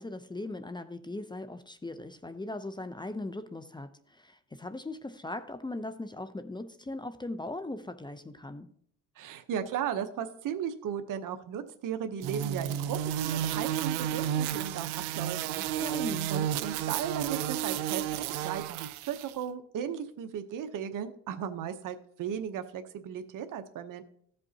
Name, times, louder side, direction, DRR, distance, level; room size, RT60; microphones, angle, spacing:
voice 1, 0.0-8.7 15.8-16.3, left 2 dB, 10° left, 0.6 m, -39 dB
voice 2, 9.2-15.6 16.3-18.1 18.4-24.0, right 8 dB, 55° right, 0.9 m, -36 dB
sound 1, 12.2-19.3, right 10 dB, 85° right, 0.6 m, -32 dB
15.5 x 5.4 x 2.8 m
cardioid pair, 95°, 38 cm